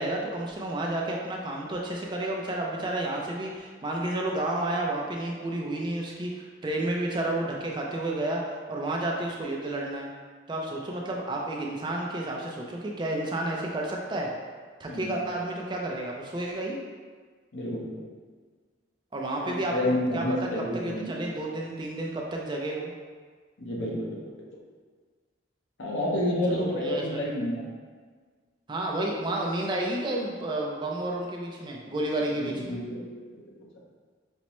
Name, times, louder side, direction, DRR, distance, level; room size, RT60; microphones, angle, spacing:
voice 1, 0.0-8.4 8.7-10.1 10.5-14.3 14.8-16.8 19.1-20.5 20.7-22.9 26.5-27.2 28.7-32.8, right 1 dB, 25° right, -1 dB, 0.3 m, -31 dB
voice 2, 17.5-18.0 19.4-21.1 23.6-24.2 25.8-27.6 32.4-33.4, left 1 dB, 80° left, -4 dB, 0.8 m, -30 dB
5.2 x 2.0 x 3.0 m, 1.5 s
head